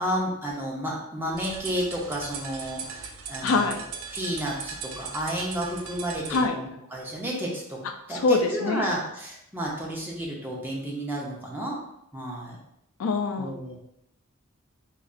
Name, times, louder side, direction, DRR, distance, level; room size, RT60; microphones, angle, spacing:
voice 1, 0.0-3.8 4.1-7.8 8.1-11.8 12.1-12.6 13.4-13.8, right 1 dB, 10° right, -4 dB, 0.7 m, -31 dB
sound 1, 1.3-6.5, right 5 dB, 85° right, 0.4 m, -39 dB
voice 2, 3.4-3.8 6.3-6.6 8.1-8.9 13.0-13.6, left 4 dB, 75° left, 6 dB, 0.4 m, -24 dB
3.8 x 3.2 x 2.4 m, 0.78 s
head